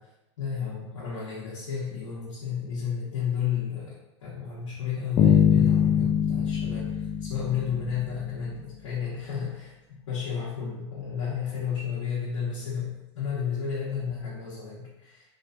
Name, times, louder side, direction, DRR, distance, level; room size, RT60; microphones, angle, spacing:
voice 1, 0.4-3.9 4.2-9.7 10.1-12.9 13.1-15.3, left 7 dB, 80° left, -9 dB, 1.2 m, -32 dB
Bass guitar, 5.2-8.3, left 9 dB, 30° left, 0.5 m, -23 dB
3.2 x 3.1 x 2.6 m, 0.96 s
hypercardioid pair, 110°, 16 cm